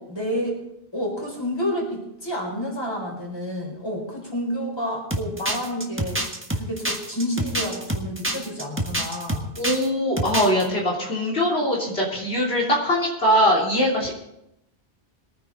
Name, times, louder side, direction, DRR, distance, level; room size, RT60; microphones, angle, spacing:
voice 1, 0.1-0.5 0.9-6.2 6.5-9.5, equal, 25° left, -1 dB, 4.6 m, -29 dB
sound 1, 5.1-9.9 10.2-10.6, right 1 dB, 10° right, 1.5 m, -27 dB
voice 2, 9.6-14.2, equal, 75° left, -4 dB, 3.6 m, -22 dB
22.5 x 9.6 x 4.1 m, 0.82 s
omnidirectional pair, 1.1 m